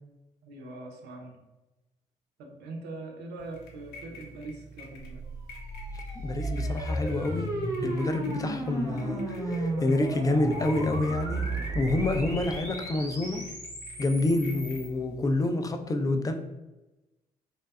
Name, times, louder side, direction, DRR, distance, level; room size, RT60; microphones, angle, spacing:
voice 1, 0.4-1.4 2.4-5.2, right 2 dB, 65° right, 2 dB, 0.5 m, -42 dB
sound 1, 3.4-15.3, equal, 65° left, 0.6 m, -48 dB
sound 2, 5.0-14.9, equal, 90° left, 0.9 m, -38 dB
sound 3, 5.6-12.6, right 2 dB, 20° right, 0.6 m, -34 dB
voice 2, 6.2-7.5 7.8-11.5 11.7-13.5 14.0-16.3, left 2 dB, 20° left, 6 dB, 0.3 m, -28 dB
2.6 x 2.1 x 2.2 m, 1.0 s
figure-of-eight pair, 45°, 18 cm